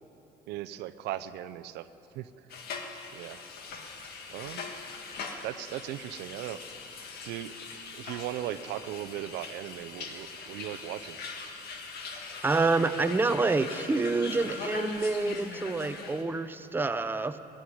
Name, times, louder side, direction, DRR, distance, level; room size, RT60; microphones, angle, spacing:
voice 1, 0.5-1.9 2.1-2.3 3.1-3.4 4.3-4.6 5.4-6.6 7.2-7.5 7.9-11.2, right 13 dB, 85° right, 12 dB, 0.6 m, -37 dB
sound 1, 2.5-16.2, left 4 dB, 70° left, 1.7 m, -41 dB
voice 2, 12.4-17.4, right 3 dB, 10° right, 10 dB, 0.6 m, -27 dB
14.5 x 10.0 x 9.4 m, 2.9 s
cardioid pair, 110°, 17 cm